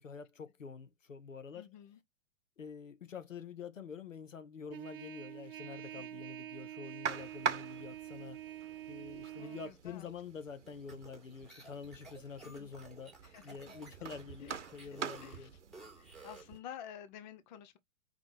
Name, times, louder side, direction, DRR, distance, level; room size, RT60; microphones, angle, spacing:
voice 1, 0.0-1.7 2.6-8.4 8.9-13.1 13.4-15.5, left 6 dB, 75° left, 0.9 m, -47 dB
voice 2, 1.5-2.0 6.1-6.2 9.4-10.1 12.6-12.7 13.2-13.6 14.4-14.9 15.2-15.5 16.0-17.8, left 9 dB, 35° left, 0.8 m, -51 dB
Trumpet, 4.7-9.7, right 12 dB, 45° right, 0.5 m, -46 dB
sound 1, 7.0-16.6, right 7 dB, 65° right, 0.8 m, -44 dB
sound 2, 10.7-16.6, right 3 dB, ahead, 1.7 m, -54 dB
5.0 x 3.6 x 2.6 m
figure-of-eight pair, 110°, 39 cm